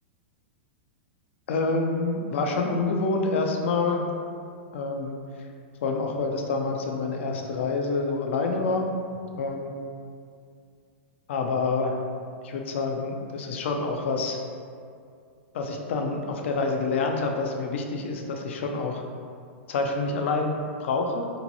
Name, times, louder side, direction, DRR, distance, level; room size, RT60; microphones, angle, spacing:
voice 1, 1.5-4.0 4.7-5.1 5.8-8.9 9.4-9.7 11.3-11.9 12.4-14.4 15.5-19.0 19.7-21.3, left 3 dB, 70° left, 2 dB, 0.4 m, -27 dB
2.6 x 2.1 x 2.8 m, 2.3 s
hypercardioid pair, 115°, 7 cm